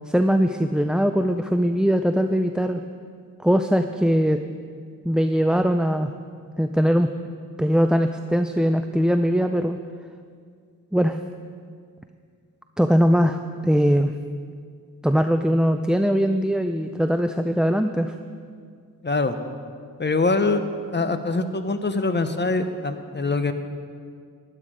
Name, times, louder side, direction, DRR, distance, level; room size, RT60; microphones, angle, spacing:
voice 1, 0.1-2.8 3.4-4.4 5.1-6.1 6.6-7.1 7.6-9.8 10.9-11.2 12.8-14.1 15.0-18.1, equal, ahead, 7 dB, 0.4 m, -21 dB
voice 2, 19.0-19.4 20.0-20.6 20.9-23.5, left 3 dB, 30° left, 9 dB, 0.9 m, -23 dB
11.5 x 11.0 x 5.1 m, 2.1 s
cardioid pair, 55°, 36 cm